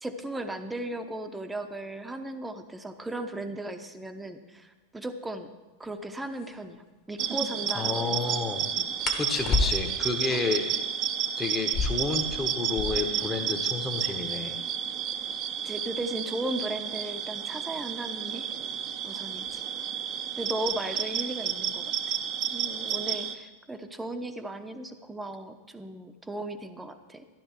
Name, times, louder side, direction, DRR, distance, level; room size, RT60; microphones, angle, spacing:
voice 1, 0.0-5.5 5.8-8.3 8.7-8.9 9.5-9.7 10.3-10.4 15.6-18.5 19.0-19.6 20.4-21.9 22.5-27.2, right 1 dB, 10° right, 8 dB, 0.9 m, -36 dB
sound 1, 5.8-5.9 6.3-6.5 9.0-10.1 11.6-13.2 13.5-13.6 13.8-14.4 15.0-17.6 18.6-18.9 19.3-19.8 20.1-20.8, left 4 dB, 30° left, 1.4 m, -32 dB
sound 2, 7.2-23.3, right 9 dB, 35° right, 0.7 m, -31 dB
voice 2, 7.7-8.7 9.2-10.7 11.4-14.6, left 4 dB, 15° left, 3 dB, 1.1 m, -30 dB
12.0 x 11.5 x 4.5 m, 1.2 s
figure-of-eight pair, 90°, 0 cm